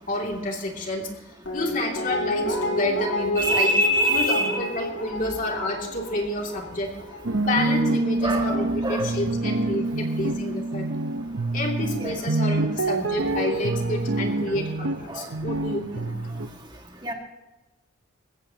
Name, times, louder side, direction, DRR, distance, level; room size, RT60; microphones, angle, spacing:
voice 1, 0.1-1.1 1.5-3.7 4.1-6.9 7.4-10.9 11.5-16.1, left 1 dB, 40° left, 1 dB, 2.7 m, -29 dB
Guitar, 1.4-8.5 8.8-8.9, left 1 dB, 85° left, 3.7 m, -30 dB
voice 2, 3.4-4.6 8.2-8.5 8.8-9.1 12.0-12.2 15.1-15.3 17.0-17.1, right 1 dB, 25° right, 2 dB, 1.9 m, -24 dB
sound 1, 7.2-16.5, right 2 dB, 85° right, 0.8 m, -26 dB
21.5 x 15.5 x 2.9 m, 1.0 s
head